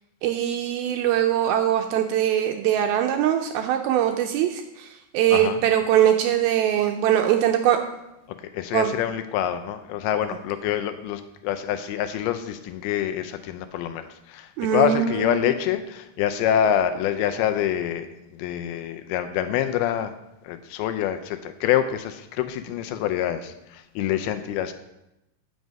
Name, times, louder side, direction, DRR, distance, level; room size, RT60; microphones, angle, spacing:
voice 1, 0.2-4.9 5.1-7.8 8.7-9.0 14.6-15.5, right 10 dB, 85° right, 5 dB, 2.2 m, -22 dB
voice 2, 5.3-5.6 8.3-20.1 20.4-24.7, left 10 dB, 80° left, 9 dB, 2.4 m, -26 dB
9.5 x 6.2 x 5.2 m, 0.91 s
omnidirectional pair, 4.7 m